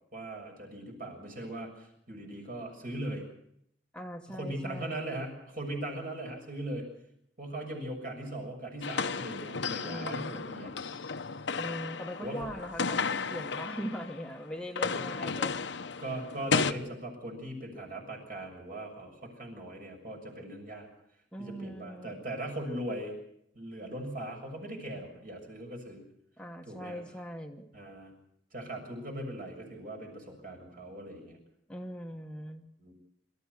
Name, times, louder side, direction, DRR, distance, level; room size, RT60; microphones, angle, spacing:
voice 1, 0.1-3.3 4.3-6.9 7.4-10.8 12.2-12.4 16.0-20.9 21.4-23.1 23.5-26.0 26.7-27.0 27.7-28.1 28.5-31.4 32.8-32.9, right 1 dB, 50° right, 3 dB, 6.8 m, -39 dB
voice 2, 3.9-5.1 9.8-10.5 11.5-15.5 21.3-22.2 26.4-27.7 31.7-32.7, equal, 5° left, 3 dB, 1.1 m, -40 dB
sound 1, 8.8-14.3 14.6-16.7, left 5 dB, 70° left, 0.9 m, -33 dB
26.5 x 14.0 x 8.2 m, 0.74 s
head